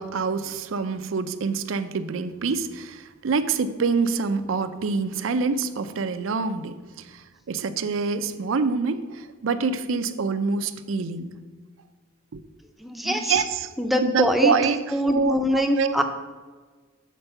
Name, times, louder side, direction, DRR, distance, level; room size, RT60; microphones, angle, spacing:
voice 1, 0.0-6.8 7.0-11.4 12.3-12.4 13.0-13.7 14.0-14.8 15.1-16.0, right 5 dB, 90° right, 11 dB, 0.5 m, -26 dB
voice 2, 12.8-13.4 13.8-14.5 14.9-16.0, equal, ahead, 5 dB, 0.5 m, -23 dB
7.3 x 4.4 x 5.5 m, 1.4 s
head